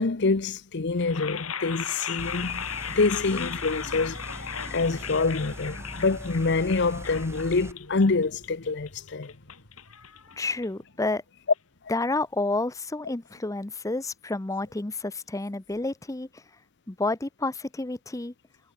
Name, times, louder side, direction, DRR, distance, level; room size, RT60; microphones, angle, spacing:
voice 1, 0.0-9.3, left 3 dB, 55° left, 0.8 m, -26 dB
sound 1, 1.0-11.0, left 8 dB, 80° left, 4.5 m, -37 dB
sound 2, 2.2-7.7, right 1 dB, 10° right, 3.7 m, -41 dB
voice 2, 10.4-11.2 11.9-16.4 16.9-18.3, left 2 dB, 15° left, 0.6 m, -30 dB
head